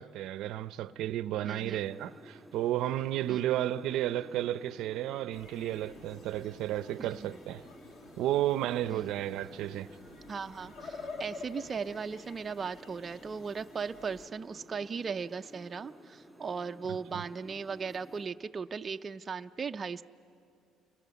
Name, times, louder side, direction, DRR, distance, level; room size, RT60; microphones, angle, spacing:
voice 1, 0.0-7.6 8.2-9.9 17.1-17.2, right 13 dB, 75° right, 0.6 m, -32 dB
voice 2, 1.4-1.8 3.3-3.4 7.0-7.3 8.9-9.0 10.3-20.0, right 5 dB, 30° right, 0.5 m, -37 dB
sound 1, 1.5-18.3, equal, ahead, 2.8 m, -54 dB
sound 2, 5.3-14.3, left 3 dB, 60° left, 2.4 m, -49 dB
sound 3, 5.6-11.5, equal, 85° left, 3.6 m, -61 dB
29.5 x 23.5 x 7.0 m
cardioid pair, 115°, 0 cm